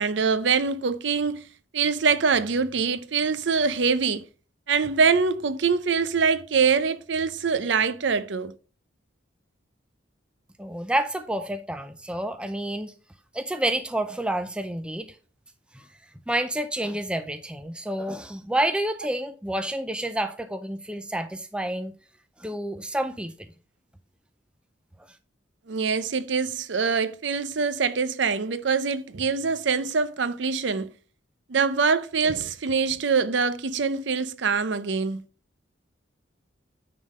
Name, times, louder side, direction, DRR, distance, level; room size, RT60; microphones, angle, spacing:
voice 1, 0.0-1.4 1.7-4.2 4.7-8.5 25.7-30.9 31.5-35.2, right 5 dB, 70° right, 0.6 m, -24 dB
voice 2, 10.6-12.9 13.3-15.2 15.7-15.9 16.3-21.9 22.4-23.3, right 1 dB, 5° right, 0.4 m, -29 dB
9.8 x 3.7 x 5.3 m
head